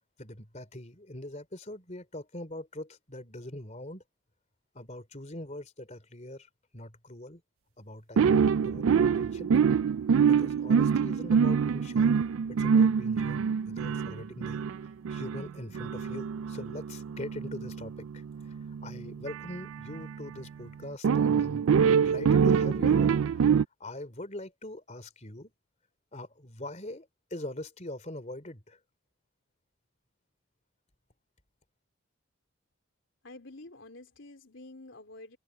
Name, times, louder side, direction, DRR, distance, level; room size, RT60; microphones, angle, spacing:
voice 1, 0.2-4.0 4.7-7.4 7.8-9.5 10.3-14.6 15.1-18.5 18.8-21.7 22.0-23.4 23.8-25.5 26.1-28.8, left 1 dB, 35° left, 3.4 m, -42 dB
sound 1, 8.2-20.3 21.0-23.6, right 6 dB, 80° right, 0.3 m, -25 dB
voice 2, 33.2-35.4, left 2 dB, 65° left, 3.7 m, -48 dB
head